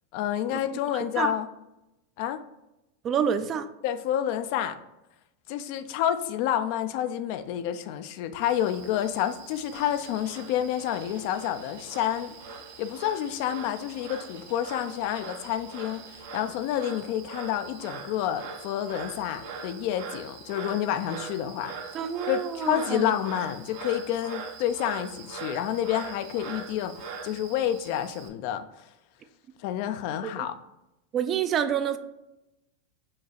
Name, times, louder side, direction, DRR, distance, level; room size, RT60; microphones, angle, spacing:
voice 1, 0.1-1.5 2.2-2.4 3.8-4.8 5.5-12.4 12.8-21.7 22.3-28.9 29.6-30.5, left 11 dB, 60° left, 10 dB, 0.4 m, -29 dB
voice 2, 3.0-3.7 21.9-23.2 30.2-30.5 31.1-32.0, right 8 dB, 35° right, 10 dB, 0.4 m, -28 dB
Frog, 8.4-28.3, right 5 dB, 70° right, 0.8 m, -42 dB
sound 1, 9.7-17.0, right 3 dB, 90° right, 1.0 m, -53 dB
5.3 x 2.4 x 3.9 m, 0.92 s
hypercardioid pair, 115°, 0 cm